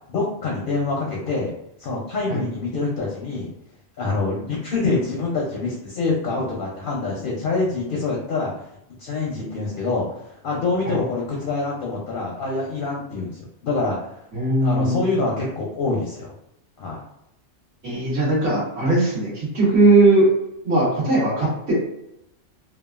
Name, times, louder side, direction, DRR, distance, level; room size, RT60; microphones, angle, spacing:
voice 1, 0.1-1.5 1.8-3.5 4.0-8.5 9.0-10.0 10.4-13.3 13.6-14.0 14.6-16.3 16.8-17.0, left 3 dB, 55° left, -3 dB, 0.6 m, -25 dB
voice 2, 14.3-15.0 17.8-20.3 20.6-21.7, right 2 dB, 60° right, -6 dB, 1.3 m, -19 dB
2.8 x 2.3 x 2.3 m, 0.81 s
omnidirectional pair, 1.3 m